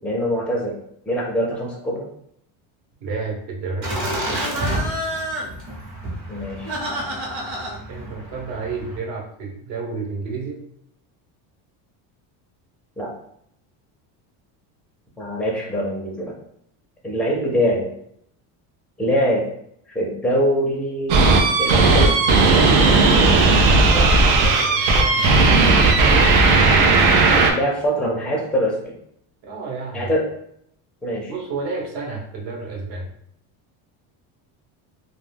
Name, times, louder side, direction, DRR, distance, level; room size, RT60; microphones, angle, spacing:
voice 1, 0.0-0.8 1.1-2.1 6.3-6.7 13.0-13.1 15.2-16.3 17.0-17.9 19.0-19.4 19.9-21.3 21.6-22.2 27.5-28.8 29.9-30.2 31.0-31.3, equal, ahead, -2 dB, 0.4 m, -23 dB
voice 2, 3.0-4.7 7.9-10.6 23.6-25.4 29.4-30.1 31.3-33.1, right 4 dB, 60° right, -1 dB, 1.0 m, -31 dB
Laughter, 3.8-9.0, right 1 dB, 35° right, 0.8 m, -28 dB
sound 1, 21.1-27.5, right 3 dB, 80° right, 0.7 m, -15 dB
2.3 x 2.2 x 3.3 m, 0.71 s
cardioid pair, 135°, 49 cm